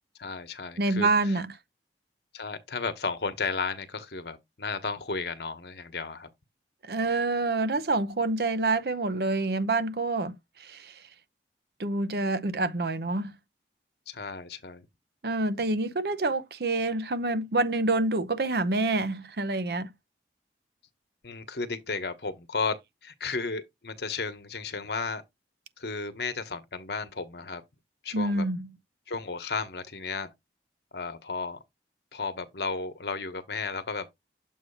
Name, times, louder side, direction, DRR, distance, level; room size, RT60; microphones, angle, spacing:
voice 1, 0.2-1.4 2.3-6.3 14.1-14.9 21.2-22.8 23.0-25.2 25.8-27.6 28.0-28.5 29.1-30.3 30.9-31.6 32.1-34.1, left 4 dB, 70° left, 1.1 m, -33 dB
voice 2, 0.8-1.5 6.9-11.0 11.8-13.3 15.2-19.9 28.1-28.7, right 2 dB, 60° right, 0.7 m, -27 dB
7.4 x 2.8 x 5.5 m
head